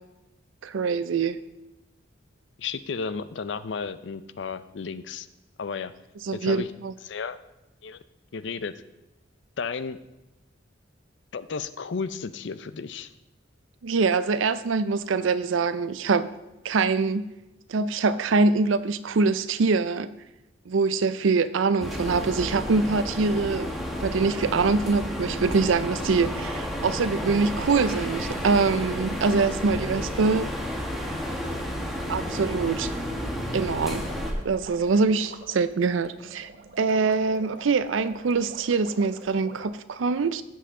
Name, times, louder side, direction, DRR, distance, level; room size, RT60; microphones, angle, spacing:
voice 1, 0.6-1.4 6.3-6.9 13.8-16.3 16.6-17.3 17.7-20.1 20.7-23.7 24.0-30.5 32.1-32.9 33.5-34.1 34.4-36.5 36.8-40.4, right 4 dB, 90° right, 14 dB, 0.5 m, -24 dB
voice 2, 2.6-5.3 5.6-5.9 6.3-6.7 7.0-7.4 7.8-8.0 8.3-8.7 9.6-10.0 11.3-13.1, left 5 dB, 65° left, 13 dB, 0.5 m, -33 dB
sound 1, 21.8-34.3, equal, ahead, 1.2 m, -31 dB
sound 2, 33.5-39.7, right 3 dB, 55° right, 0.8 m, -46 dB
15.5 x 5.6 x 3.7 m, 0.99 s
head